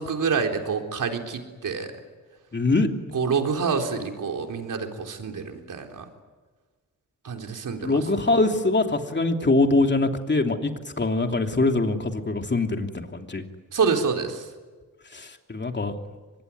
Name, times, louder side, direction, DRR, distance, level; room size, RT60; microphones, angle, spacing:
voice 1, 0.0-1.9 3.1-6.0 7.2-7.9 13.7-14.4, right 5 dB, 65° right, 3 dB, 3.9 m, -27 dB
voice 2, 2.5-2.9 7.8-10.7 11.0-13.4 15.1-15.9, left 2 dB, 35° left, 4 dB, 3.0 m, -23 dB
24.5 x 21.0 x 9.7 m, 1.4 s
cardioid pair, 75°, 33 cm